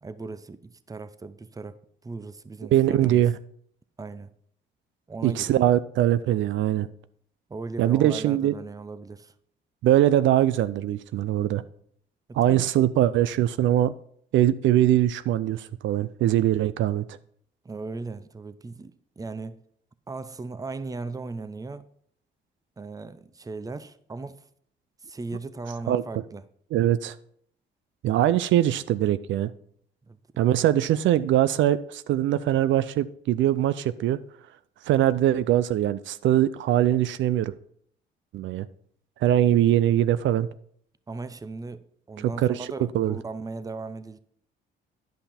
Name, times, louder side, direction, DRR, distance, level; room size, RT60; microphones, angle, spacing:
voice 1, 0.0-3.2 4.0-4.3 5.1-5.7 7.5-9.3 12.3-12.9 17.6-19.6 20.1-21.9 22.8-24.4 25.0-26.4 30.1-30.2 41.1-44.2, right 3 dB, 20° right, 0.6 m, -37 dB
voice 2, 2.7-3.3 5.2-6.9 7.8-8.5 9.8-11.6 12.3-13.9 14.3-17.0 25.9-26.0 26.7-27.1 28.0-29.5 30.4-34.2 34.9-37.5 38.3-38.7 39.2-40.5 42.2-42.7 42.9-43.2, right 12 dB, 75° right, 0.4 m, -22 dB
10.5 x 5.6 x 4.2 m
cardioid pair, 90°, 20 cm